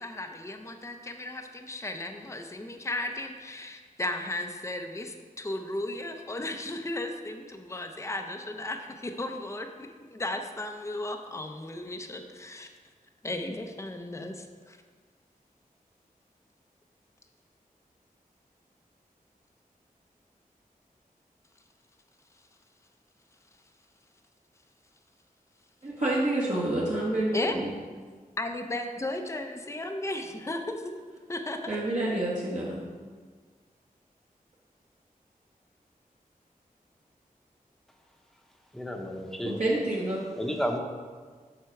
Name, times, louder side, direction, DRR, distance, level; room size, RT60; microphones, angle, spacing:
voice 1, 0.0-12.7 13.2-14.8 27.3-27.6 28.4-31.0 31.3-31.6, left 2 dB, 20° left, 5 dB, 0.6 m, -35 dB
voice 2, 25.8-27.7 31.7-32.9 39.4-40.2, right 1 dB, 50° right, -7 dB, 1.5 m, -28 dB
voice 3, 38.7-39.6 40.4-40.8, equal, 5° left, 2 dB, 1.0 m, -31 dB
7.7 x 5.8 x 4.7 m, 1.5 s
wide cardioid pair, 75°, 15 cm